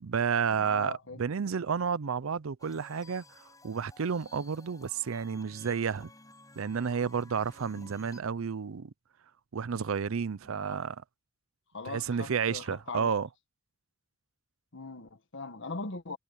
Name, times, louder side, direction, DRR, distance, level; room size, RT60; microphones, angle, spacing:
voice 1, 0.0-6.1 6.6-8.9 9.5-11.0 11.9-13.3, right 6 dB, 80° right, 0.5 m, -31 dB
voice 2, 0.6-1.2 7.8-7.9 10.5-10.8 11.7-13.1 14.7-16.2, left 3 dB, 65° left, 1.5 m, -41 dB
sound 1, 2.6-8.2, left 2 dB, 15° left, 7.0 m, -55 dB
head